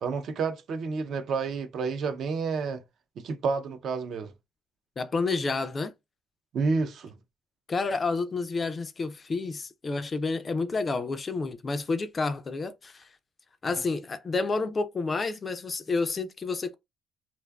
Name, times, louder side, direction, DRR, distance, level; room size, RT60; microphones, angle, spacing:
voice 1, 0.0-2.8 3.2-4.3 6.5-7.1, right 4 dB, 55° right, 0.5 m, -30 dB
voice 2, 5.0-5.9 7.7-13.1 13.6-16.8, left 3 dB, 30° left, 0.3 m, -29 dB
2.5 x 2.3 x 2.2 m
cardioid pair, 115°, 0 cm